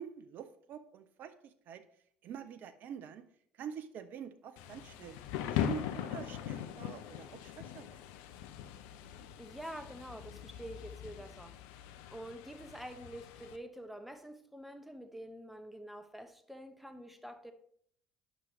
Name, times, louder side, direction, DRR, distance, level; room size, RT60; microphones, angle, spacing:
voice 1, 0.0-1.8 2.2-3.3 3.5-8.1, right 7 dB, 50° right, 0.5 m, -46 dB
Thunder / Rain, 4.6-13.6, left 10 dB, 65° left, 0.5 m, -41 dB
voice 2, 9.4-11.5 12.1-17.5, right 1 dB, 5° right, 0.9 m, -47 dB
9.5 x 6.0 x 3.0 m
hypercardioid pair, 60°, 4 cm